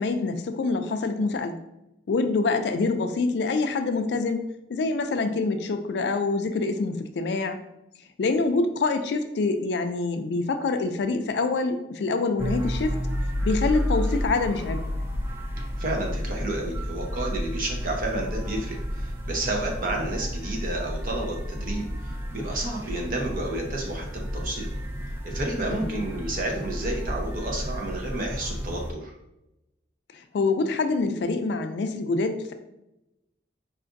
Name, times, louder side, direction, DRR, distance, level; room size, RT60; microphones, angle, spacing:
voice 1, 0.0-1.6 2.1-7.6 8.2-13.0 13.4-14.8 25.7-25.9 30.1-32.5, left 3 dB, 65° left, 7 dB, 0.4 m, -26 dB
sound 1, 12.4-28.9, equal, 10° right, 0.3 m, -31 dB
voice 2, 15.8-24.7 25.2-29.1, right 2 dB, 45° right, 0 dB, 0.7 m, -31 dB
4.8 x 2.5 x 2.5 m, 0.89 s
head